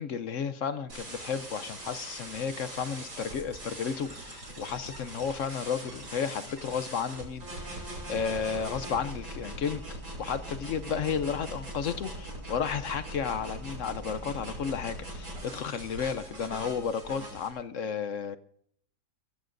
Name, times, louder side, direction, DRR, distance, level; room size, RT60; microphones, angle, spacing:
voice 1, 0.0-7.8 8.1-18.4, left 6 dB, 60° left, 12 dB, 0.9 m, -33 dB
sound 1, 0.9-17.5, right 1 dB, 80° right, 6.5 m, -41 dB
24.5 x 16.0 x 2.6 m, 0.66 s
omnidirectional pair, 1.8 m